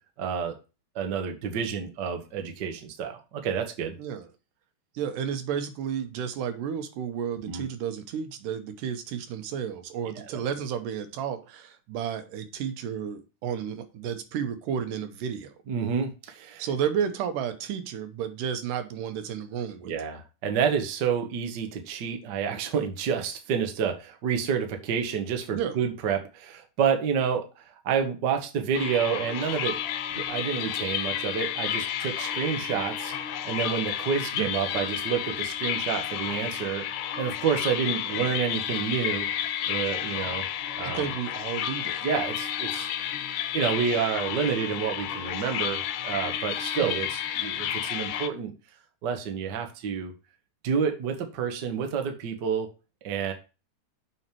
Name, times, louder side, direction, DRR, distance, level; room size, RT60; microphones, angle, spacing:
voice 1, 0.2-0.5 0.9-3.9 7.5-7.6 10.3-10.4 15.7-16.6 19.8-29.8 30.2-33.1 33.4-36.8 37.2-39.3 39.7-40.4 40.8-41.1 42.0-42.9 43.5-48.5 49.0-50.1 50.6-52.7 53.0-53.3, right 7 dB, 60° right, 5 dB, 1.1 m, -29 dB
voice 2, 5.0-15.5 16.6-19.9 25.5-25.8 34.3-34.5 38.1-38.4 40.8-42.0 46.8-47.0, right 8 dB, 90° right, 9 dB, 2.5 m, -32 dB
sound 1, 28.7-48.3, left 10 dB, 80° left, 2.1 m, -31 dB
7.1 x 5.3 x 4.5 m, 0.31 s
omnidirectional pair, 3.7 m